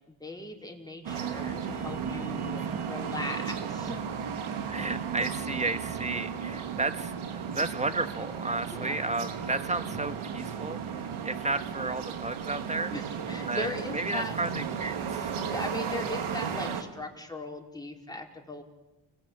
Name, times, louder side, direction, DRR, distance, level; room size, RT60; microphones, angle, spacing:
voice 1, 0.1-4.1 8.7-8.9 11.0-11.3 11.8-11.9 12.9-14.3 15.2-18.6, left 1 dB, 10° left, 1 dB, 4.9 m, -39 dB
sound 1, 1.0-16.8, right 7 dB, 85° right, 2.9 m, -34 dB
voice 2, 4.7-12.9 13.5-15.4, right 2 dB, 15° right, 9 dB, 1.9 m, -33 dB
30.0 x 21.0 x 8.9 m, 1.0 s
cardioid pair, 100°, 48 cm